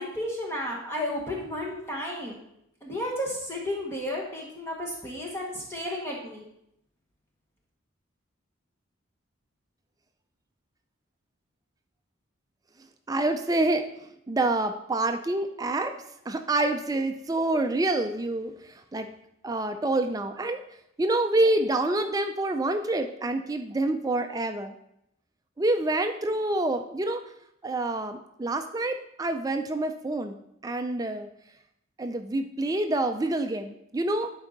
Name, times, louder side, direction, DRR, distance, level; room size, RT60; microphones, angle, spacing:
voice 1, 0.0-2.4 2.8-6.5, left 1 dB, 10° left, -2 dB, 1.1 m, -33 dB
voice 2, 13.1-13.8 14.3-16.0 16.3-19.1 19.4-20.6 21.0-24.7 25.6-27.2 27.6-30.4 30.6-31.3 32.0-34.3, right 2 dB, 15° right, 7 dB, 0.3 m, -27 dB
11.0 x 4.5 x 3.8 m, 0.78 s
head